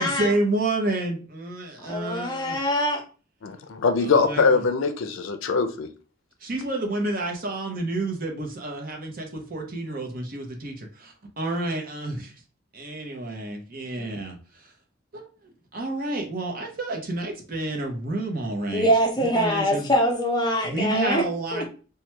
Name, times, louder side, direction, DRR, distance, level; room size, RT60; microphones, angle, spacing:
voice 1, 0.0-2.6 4.0-4.6 6.4-12.3 12.7-14.4 15.1-15.3 15.7-18.9 19.2-19.9 20.6-21.7, right 2 dB, 45° right, 2 dB, 0.7 m, -29 dB
voice 2, 1.8-3.0 14.0-14.1 18.7-21.2 21.5-21.6, equal, 20° left, 0 dB, 0.7 m, -23 dB
voice 3, 3.4-5.9, left 4 dB, 75° left, 8 dB, 0.4 m, -22 dB
3.0 x 2.2 x 3.2 m, 0.36 s
head